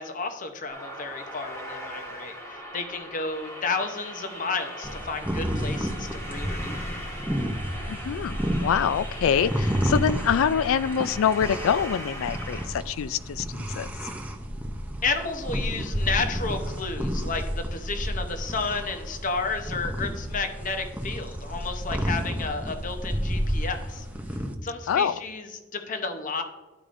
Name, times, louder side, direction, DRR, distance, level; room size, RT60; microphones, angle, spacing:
voice 1, 0.0-6.8 15.0-24.1 24.6-26.4, left 4 dB, 40° left, 6 dB, 0.7 m, -32 dB
sound 1, 0.7-12.7, equal, 15° left, 1.3 m, -39 dB
sound 2, 4.8-24.5, equal, 5° right, 0.5 m, -31 dB
voice 2, 7.9-13.9 24.9-25.2, left 8 dB, 75° left, 16 dB, 0.3 m, -25 dB
12.0 x 4.8 x 2.5 m, 1.3 s
head